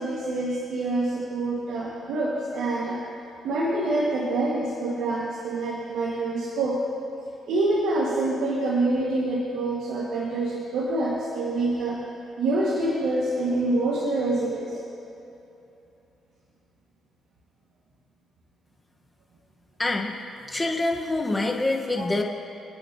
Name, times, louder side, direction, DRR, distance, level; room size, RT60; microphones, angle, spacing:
voice 1, 0.0-3.0 3.4-6.8 7.5-12.0 12.4-14.8 22.0-22.1, right 2 dB, 80° right, -5 dB, 2.1 m, -26 dB
voice 2, 19.8-20.1 20.5-22.2, left 2 dB, 15° left, 1 dB, 1.5 m, -25 dB
28.0 x 9.6 x 3.0 m, 2.8 s
cardioid pair, 90°, 0 cm